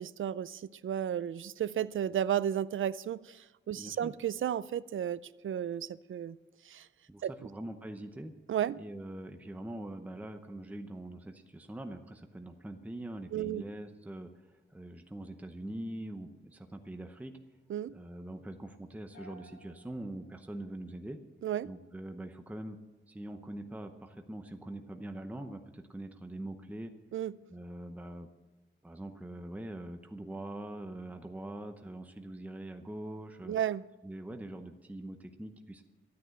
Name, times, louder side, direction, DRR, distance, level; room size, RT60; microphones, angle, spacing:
voice 1, 0.0-6.4 6.7-6.9 7.2-7.3 8.5-8.8 13.3-13.6 17.7-18.0 21.4-21.7 27.1-27.3 33.5-33.8, right 10 dB, 75° right, 0.5 m, -33 dB
voice 2, 3.7-4.1 7.1-8.3 8.8-17.3 17.9-21.2 21.6-22.8 23.1-26.9 27.5-28.3 28.8-33.6 34.0-35.8, right 1 dB, 5° right, 0.8 m, -43 dB
sound 1, 19.1-21.4, right 2 dB, 70° left, 3.5 m, -58 dB
13.0 x 9.6 x 7.7 m
wide cardioid pair, 145°, 20 cm